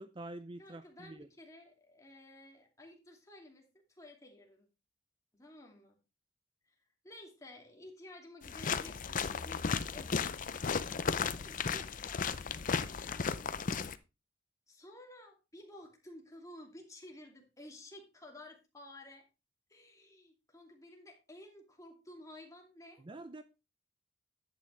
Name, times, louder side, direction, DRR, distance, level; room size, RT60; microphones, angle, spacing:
voice 1, 0.0-1.3 23.0-23.4, right 2 dB, 25° right, 0.5 m, -46 dB
voice 2, 0.6-3.7 4.0-4.7 5.3-6.0 6.7-6.8 7.0-10.3 10.9-13.3 14.7-19.2 19.7-23.1, left 1 dB, 15° left, 2.6 m, -53 dB
sound 1, 8.4-14.0, left 5 dB, 45° left, 0.6 m, -35 dB
10.5 x 8.9 x 3.3 m
head